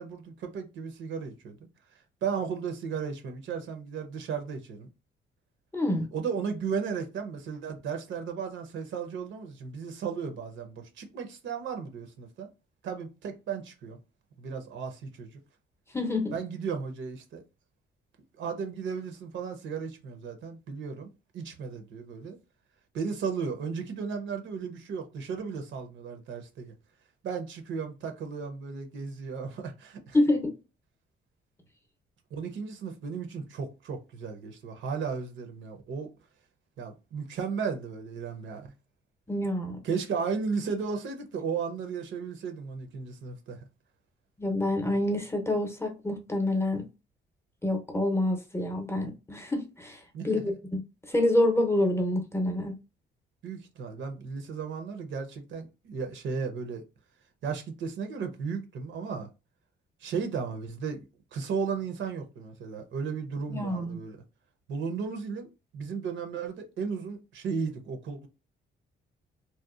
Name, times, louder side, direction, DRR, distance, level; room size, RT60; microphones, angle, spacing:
voice 1, 0.0-1.6 2.2-4.9 6.1-12.5 12.8-14.0 14.4-15.4 16.3-17.4 18.4-22.4 22.9-26.7 27.2-30.2 32.3-36.1 36.8-38.7 39.8-43.6 50.1-50.6 53.4-56.8 57.4-59.3 60.0-61.0 61.3-64.2 64.7-68.3, right 5 dB, 70° right, 0.7 m, -35 dB
voice 2, 5.7-6.1 15.9-16.4 30.1-30.6 39.3-39.8 44.4-46.9 47.6-50.4 50.7-50.8 51.1-52.8 63.5-64.0, left 1 dB, 15° left, 0.6 m, -27 dB
2.8 x 2.1 x 2.3 m
cardioid pair, 90°, 20 cm